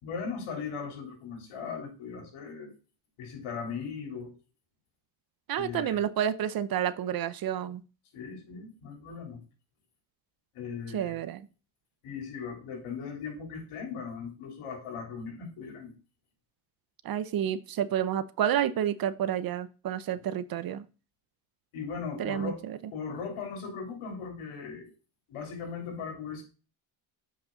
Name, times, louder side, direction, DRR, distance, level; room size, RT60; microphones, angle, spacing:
voice 1, 0.0-2.7 3.2-4.3 5.6-6.0 8.1-9.4 10.5-11.2 12.0-15.9 21.7-22.6 22.9-24.9 25.3-26.4, left 5 dB, 80° left, 1 dB, 3.4 m, -38 dB
voice 2, 5.5-7.8 10.9-11.5 17.0-20.8 22.2-22.8, right 10 dB, 45° right, 15 dB, 0.6 m, -30 dB
7.5 x 5.5 x 3.8 m, 0.34 s
cardioid pair, 115°, 50 cm